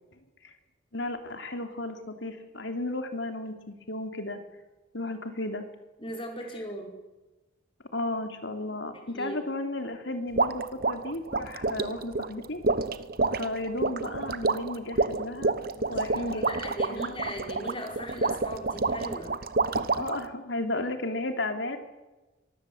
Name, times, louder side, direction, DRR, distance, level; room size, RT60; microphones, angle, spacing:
voice 1, 0.9-4.4 4.9-5.7 7.9-12.6 13.4-15.5 15.9-16.5 16.9-17.1 19.9-21.8, left 2 dB, 65° left, 7 dB, 3.0 m, -34 dB
voice 2, 6.0-6.9 9.1-9.4 15.7-19.3, equal, 25° left, 2 dB, 5.1 m, -38 dB
sound 1, 10.4-20.3, right 3 dB, 50° right, 1.1 m, -28 dB
24.5 x 20.0 x 7.9 m, 1.1 s
head